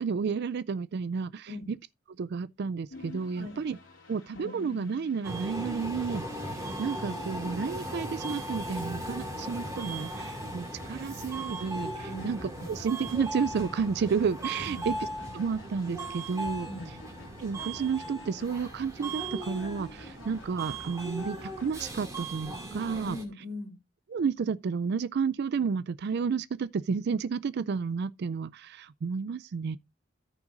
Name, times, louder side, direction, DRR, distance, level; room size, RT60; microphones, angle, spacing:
voice 1, 0.0-1.5 2.2-3.8 4.1-15.1 15.3-16.7 17.4-23.2 24.1-29.8, right 5 dB, 55° right, 0.4 m, -31 dB
sound 1, 2.9-21.9, left 1 dB, 75° left, 2.3 m, -50 dB
Subway metro underground, 5.2-23.2, right 1 dB, 15° right, 2.4 m, -38 dB
voice 2, 12.0-12.7 14.6-14.9 16.7-17.0 23.0-23.8, left 1 dB, 85° right, 2.9 m, -41 dB
14.0 x 6.0 x 2.5 m
head